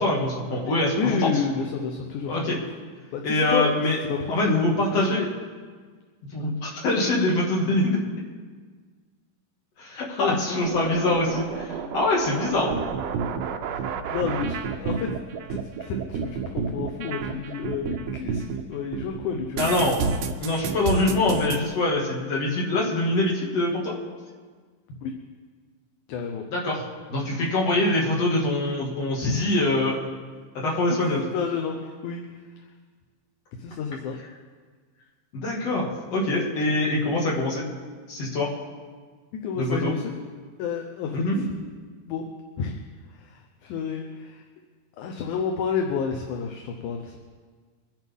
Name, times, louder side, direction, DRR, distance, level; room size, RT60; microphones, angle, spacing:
voice 1, 0.0-1.3 2.3-2.6 3.2-4.0 4.3-5.3 6.2-8.0 9.8-12.7 19.6-20.0 20.4-23.9 26.5-26.8 27.1-30.0 30.5-31.2 35.3-37.6 38.1-38.5 39.5-39.9 41.1-41.5, left 2 dB, 50° left, -4 dB, 3.3 m, -24 dB
voice 2, 1.0-2.5 3.1-5.0 9.9-10.7 13.7-13.8 14.1-15.1 15.5-19.6 25.0-25.1 26.1-26.4 29.2-29.4 30.6-32.3 33.6-34.2 39.4-40.2 40.6-41.5 42.1-42.3 42.6-42.8 43.1-44.4 45.0-47.2, left 6 dB, 70° left, 3 dB, 2.2 m, -30 dB
sound 1, 10.6-18.6 18.9-21.6, right 6 dB, 80° right, 1.5 m, -30 dB
24.0 x 10.5 x 3.7 m, 1.5 s
omnidirectional pair, 3.9 m